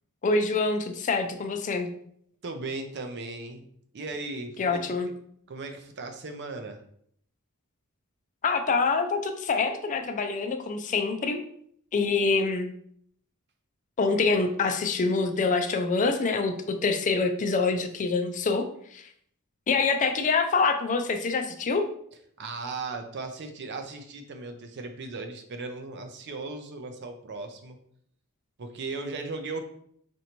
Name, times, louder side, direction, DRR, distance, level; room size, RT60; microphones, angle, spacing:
voice 1, 0.2-1.9 4.6-5.1 8.4-11.4 11.9-12.7 14.0-18.7 18.9-19.1 19.7-21.9, left 4 dB, 35° left, 6 dB, 0.4 m, -25 dB
voice 2, 2.4-3.7 3.9-5.0 5.5-6.8 22.4-27.8 28.6-29.6, right 3 dB, 50° right, 6 dB, 0.5 m, -37 dB
4.3 x 2.6 x 2.9 m, 0.66 s
head